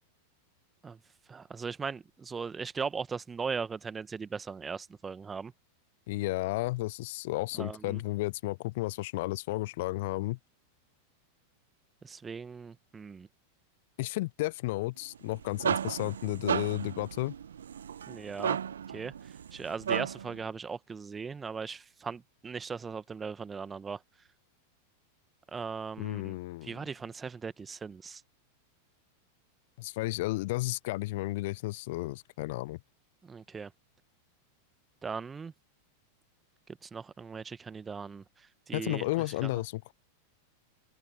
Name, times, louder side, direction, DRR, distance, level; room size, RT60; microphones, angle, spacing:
voice 1, 1.3-5.5 7.5-8.0 12.0-13.3 18.1-18.6 18.9-24.0 25.5-26.3 26.6-28.2 33.2-33.7 35.0-35.5 36.8-39.1 39.4-39.5, right 5 dB, 15° right, 1.5 m, -38 dB
voice 2, 6.1-10.4 14.0-17.3 26.0-26.8 29.8-32.8 38.7-39.9, left 20 dB, 50° left, 1.1 m, -33 dB
sound 1, 15.2-20.4, right 8 dB, 65° right, 0.6 m, -34 dB
open air
figure-of-eight pair, 90°, 0 cm